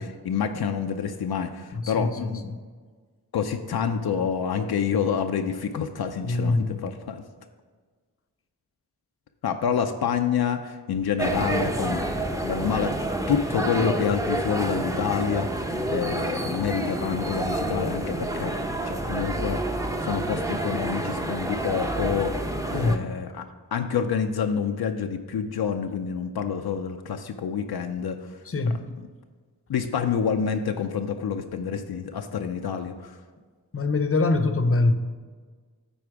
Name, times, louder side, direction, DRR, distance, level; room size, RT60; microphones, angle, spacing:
voice 1, 0.0-2.4 3.3-7.2 9.4-18.5 18.8-23.4 23.7-28.3 29.7-33.2, left 7 dB, 75° left, 5 dB, 0.6 m, -28 dB
voice 2, 1.7-2.6 6.2-6.9 22.7-23.0 28.5-28.9 33.7-34.9, left 3 dB, 35° left, 9 dB, 0.7 m, -24 dB
sound 1, 11.2-23.0, right 1 dB, 10° right, 0.7 m, -28 dB
8.6 x 4.2 x 4.7 m, 1.5 s
cardioid pair, 45°, 38 cm